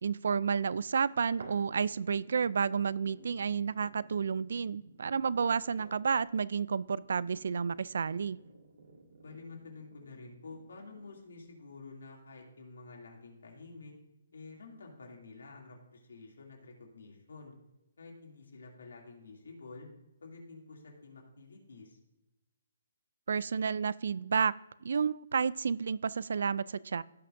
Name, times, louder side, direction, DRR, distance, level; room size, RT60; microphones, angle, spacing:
voice 1, 0.0-8.4 23.3-27.0, right 6 dB, 70° right, 21 dB, 0.3 m, -31 dB
sound 1, 1.4-11.4 12.0-12.1, right 3 dB, 85° right, 1.9 m, -56 dB
voice 2, 9.2-13.9 14.3-17.5 18.0-19.9 20.2-22.0, left 3 dB, 85° left, 0 dB, 2.6 m, -50 dB
17.0 x 6.0 x 2.6 m, 0.94 s
hypercardioid pair, 170°, 0 cm